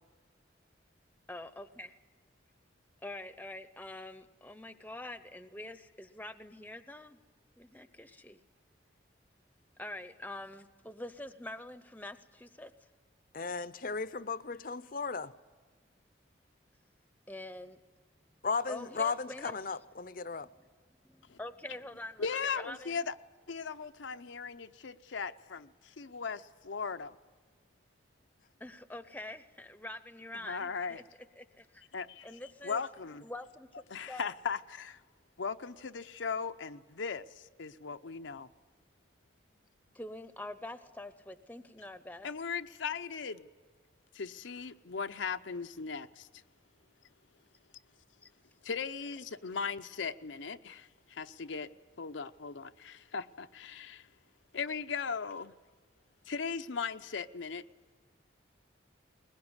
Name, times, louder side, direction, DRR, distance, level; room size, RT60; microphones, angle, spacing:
voice 1, 1.3-1.9 3.0-7.2 7.6-8.4 9.8-12.7 17.3-17.8 18.7-19.6 20.3-20.7 21.0-23.0 28.6-31.0 31.4-31.8 32.2-32.8 33.2-34.3 39.9-42.3 48.2-48.3, left 1 dB, 10° left, 0.7 m, -45 dB
voice 2, 13.3-15.3 18.4-20.5, left 4 dB, 45° left, 0.6 m, -35 dB
voice 3, 22.2-23.1 23.5-27.2 30.3-31.0 31.9-32.3 32.6-33.2 33.9-35.0 35.4-38.5 42.2-43.5 44.1-46.3 48.6-51.7 52.0-54.1 54.5-55.5 56.3-57.6, left 5 dB, 80° left, 0.7 m, -38 dB
20.5 x 20.5 x 9.7 m
head